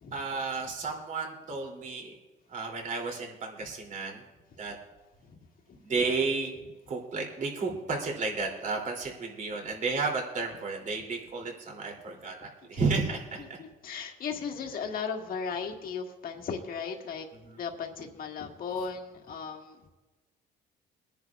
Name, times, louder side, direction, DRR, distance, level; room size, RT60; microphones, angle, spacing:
voice 1, 0.1-2.1 2.5-4.2 4.6-4.7 5.8-6.5 6.9-13.4 17.4-17.6, right 4 dB, 45° right, 1 dB, 2.9 m, -32 dB
voice 2, 13.8-17.2 17.6-19.9, left 5 dB, 50° left, 3 dB, 1.7 m, -36 dB
23.5 x 10.5 x 2.4 m, 1.2 s
cardioid pair, 115°, 18 cm